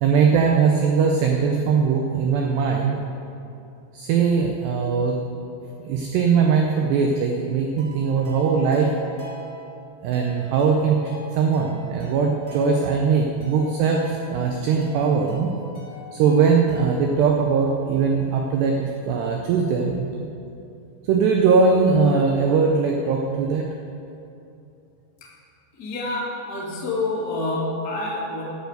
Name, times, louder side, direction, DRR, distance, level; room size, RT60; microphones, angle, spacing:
voice 1, 0.0-3.0 3.9-5.2 5.9-8.9 10.0-15.5 16.1-20.3 21.1-23.7, right 5 dB, 80° right, 1 dB, 2.5 m, -20 dB
sound 1, 7.8-17.2, right 3 dB, 25° right, 1.5 m, -42 dB
voice 2, 25.8-28.4, left 2 dB, 85° left, -5 dB, 0.8 m, -27 dB
11.5 x 7.0 x 7.9 m, 2.7 s
omnidirectional pair, 5.8 m